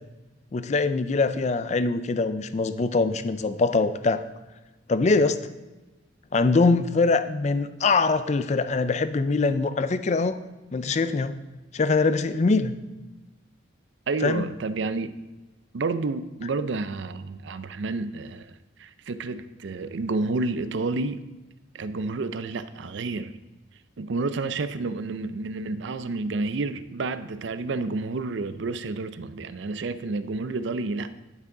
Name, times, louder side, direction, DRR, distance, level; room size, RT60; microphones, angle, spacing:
voice 1, 0.5-4.2 4.9-5.4 6.3-10.4 10.7-11.4 11.7-12.7 14.2-14.5, left 3 dB, 35° left, 12 dB, 0.4 m, -23 dB
voice 2, 14.1-15.1 15.7-21.2 21.7-23.4 24.0-31.2, right 3 dB, 65° right, 13 dB, 0.5 m, -30 dB
11.5 x 5.9 x 3.8 m, 1.1 s
head